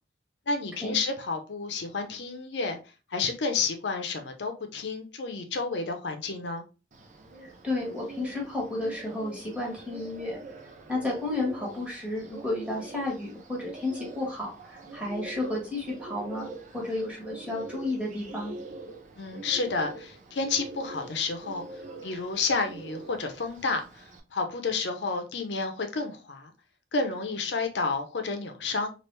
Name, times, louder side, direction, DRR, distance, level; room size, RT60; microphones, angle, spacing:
voice 1, 0.5-2.8 3.1-6.6 19.1-21.6 22.0-24.0 24.3-26.5 26.9-28.9, left 4 dB, 85° left, 0.6 m, -30 dB
Bird, 6.9-24.2, right 3 dB, 45° right, 0.5 m, -44 dB
voice 2, 7.6-10.4 10.9-16.5 16.7-18.5, left 2 dB, 10° right, 1.4 m, -32 dB
3.2 x 2.4 x 3.0 m
head